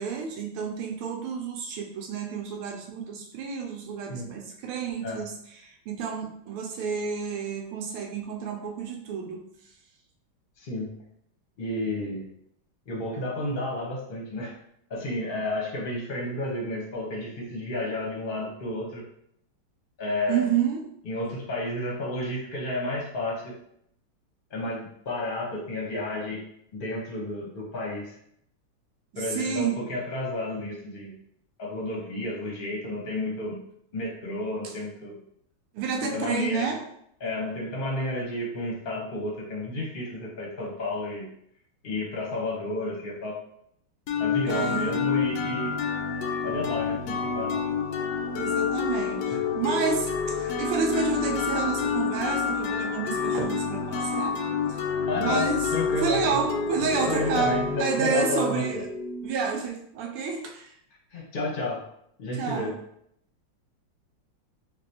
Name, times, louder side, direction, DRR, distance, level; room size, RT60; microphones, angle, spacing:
voice 1, 0.0-5.3 5.6-9.4 20.3-20.8 29.1-29.8 34.6-34.7 35.7-36.8 44.5-45.0 48.3-54.4 54.7-54.8 55.2-55.7 56.0-58.9 59.2-60.7 62.4-62.7, right 6 dB, 90° right, 2 dB, 1.5 m, -30 dB
voice 2, 10.6-10.9 11.6-12.3 12.9-14.5 14.9-19.0 20.0-20.5 21.0-23.5 24.5-26.4 26.7-28.1 29.1-31.1 31.6-33.6 33.9-35.2 36.0-36.7 37.2-41.3 41.8-43.4 44.2-45.8 46.4-47.5 49.3-49.4 55.1-56.4 57.1-58.8 61.1-61.8 62.2-62.7, left 1 dB, 40° left, -3 dB, 0.7 m, -31 dB
sound 1, 44.1-59.7, left 5 dB, 90° left, 0.9 m, -28 dB
4.0 x 2.6 x 2.7 m, 0.70 s
omnidirectional pair, 2.3 m